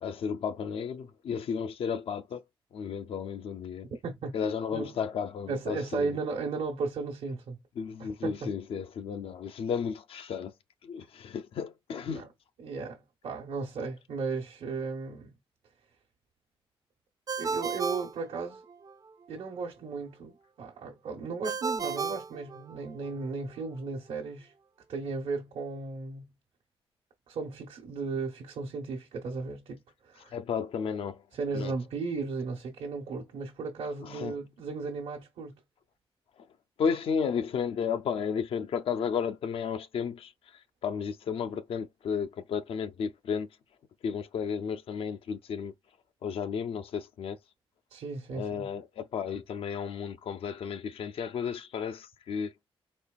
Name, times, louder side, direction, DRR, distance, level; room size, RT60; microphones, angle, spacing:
voice 1, 0.0-2.4 2.7-3.9 4.3-6.2 7.8-10.5 10.8-12.3 30.3-31.2 31.5-31.7 34.0-34.4 36.8-40.3 40.8-43.5 44.0-45.7 46.2-47.4 48.3-52.5, left 6 dB, 70° left, 0.5 m, -33 dB
voice 2, 5.5-7.6 8.2-8.5 12.1-12.3 12.6-15.3 17.4-18.6 19.3-24.5 24.9-26.3 27.3-30.4 31.3-35.6 47.9-48.7, right 4 dB, 85° right, 1.0 m, -35 dB
Ringtone, 17.3-18.9 21.4-23.1, right 5 dB, 40° right, 0.4 m, -34 dB
4.3 x 3.0 x 2.3 m
cardioid pair, 100°, 10 cm